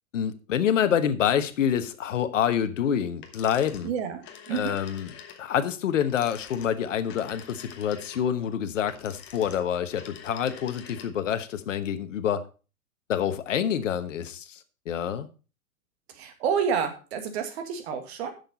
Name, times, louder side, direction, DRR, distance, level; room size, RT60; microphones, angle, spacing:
voice 1, 0.1-3.9 4.5-5.1 5.4-12.4 13.1-15.3, left 9 dB, 60° left, 1.2 m, -27 dB
sound 1, 3.2-11.3, left 8 dB, 25° left, 1.3 m, -47 dB
voice 2, 3.8-4.8 16.2-18.3, right 7 dB, 50° right, 2.0 m, -29 dB
10.5 x 6.8 x 4.2 m
figure-of-eight pair, 110°, 42 cm